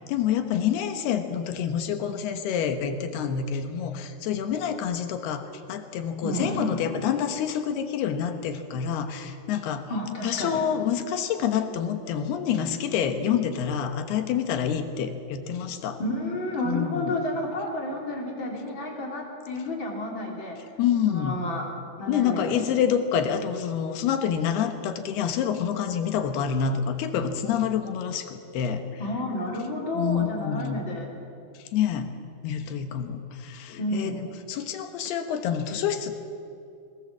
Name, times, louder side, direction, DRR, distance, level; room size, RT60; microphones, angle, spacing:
voice 1, 0.0-9.9 10.2-16.0 16.6-17.1 20.8-21.4 22.1-28.8 29.9-30.8 31.7-32.1 32.4-36.2, left 8 dB, 80° left, 7 dB, 3.3 m, -27 dB
voice 2, 6.2-6.9 9.9-10.7 16.0-20.6 21.1-21.7 22.0-22.6 29.0-31.1 33.8-34.2, left 1 dB, 30° left, -1 dB, 3.6 m, -31 dB
22.0 x 20.0 x 7.5 m, 2.5 s
omnidirectional pair, 4.5 m